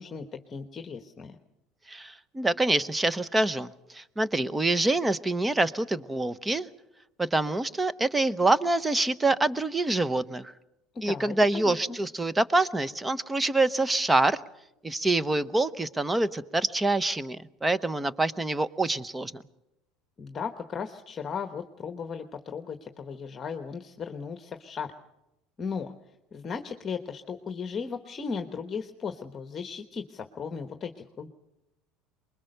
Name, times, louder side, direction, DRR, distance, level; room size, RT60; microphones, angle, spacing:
voice 1, 0.0-1.4 10.9-11.3 11.6-12.0 20.2-24.9 25.6-25.9 26.3-31.3, left 6 dB, 30° left, 6 dB, 1.2 m, -36 dB
voice 2, 1.9-6.7 7.2-10.5 11.0-14.4 14.8-19.4, right 2 dB, 10° right, 16 dB, 0.8 m, -26 dB
23.5 x 21.5 x 6.7 m, 0.91 s
supercardioid pair, 120°, 0 cm